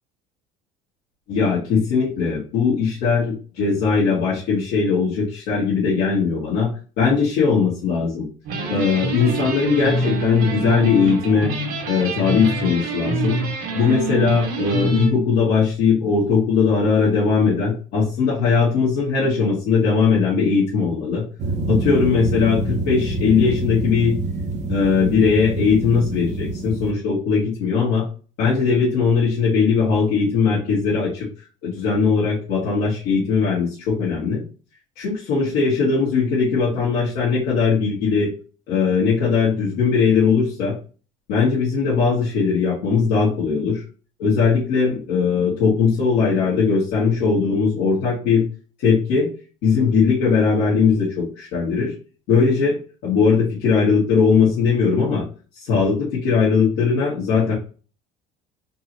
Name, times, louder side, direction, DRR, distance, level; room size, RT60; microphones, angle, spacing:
voice 1, 1.3-6.7 7.0-8.3 8.7-11.5 11.9-13.4 13.7-21.2 21.7-24.2 24.7-28.0 28.4-31.3 31.6-34.4 35.0-38.3 38.7-40.7 41.3-43.8 44.2-48.4 48.8-49.3 49.6-51.9 52.3-55.2 55.6-57.5, left 5 dB, 75° left, -7 dB, 1.9 m, -19 dB
sound 1, 8.4-15.1, right 2 dB, 65° right, 1.7 m, -26 dB
sound 2, 21.4-26.9, right 2 dB, 40° right, 1.0 m, -26 dB
4.5 x 3.0 x 2.8 m, 0.36 s
supercardioid pair, 105°, 17 cm